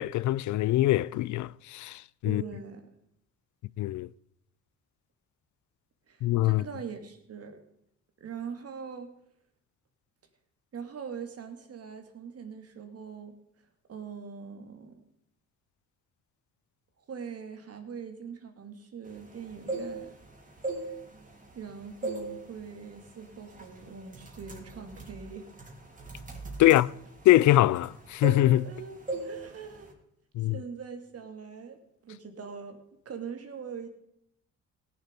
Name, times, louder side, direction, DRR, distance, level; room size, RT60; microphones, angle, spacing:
voice 1, 0.0-2.4 3.8-4.1 6.2-6.6 26.6-26.9 27.2-28.7 30.4-30.6, left 15 dB, 70° left, 0.5 m, -23 dB
voice 2, 2.2-2.9 6.1-7.6 8.2-9.1 10.7-13.3 13.9-15.0 17.1-20.1 20.8-21.0 21.5-25.5 28.6-29.9 30.4-32.8 33.1-33.9, right 6 dB, 50° right, 2.4 m, -42 dB
sound 1, 19.5-20.2 20.6-21.6 22.0-22.4 22.7-23.0 23.6-23.8 24.1-27.9 28.2-28.8 29.1-29.4 29.6-29.9, right 2 dB, 25° right, 3.5 m, -36 dB
18.0 x 7.1 x 5.2 m
cardioid pair, 90°, 30 cm